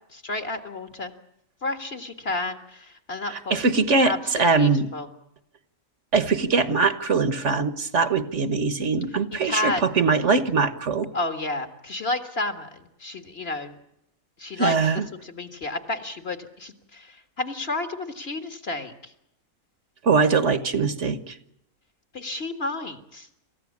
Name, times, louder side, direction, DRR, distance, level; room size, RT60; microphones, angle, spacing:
voice 1, 0.1-1.1 1.6-3.6 4.1-5.1 9.3-9.9 11.1-13.8 14.4-14.8 15.2-19.1 22.1-23.3, left 2 dB, 50° left, 7 dB, 2.0 m, -31 dB
voice 2, 3.3-4.9 6.1-11.1 14.6-15.0 20.0-21.4, right 4 dB, 60° right, 11 dB, 1.5 m, -22 dB
27.0 x 15.5 x 8.5 m, 0.80 s
omnidirectional pair, 1.4 m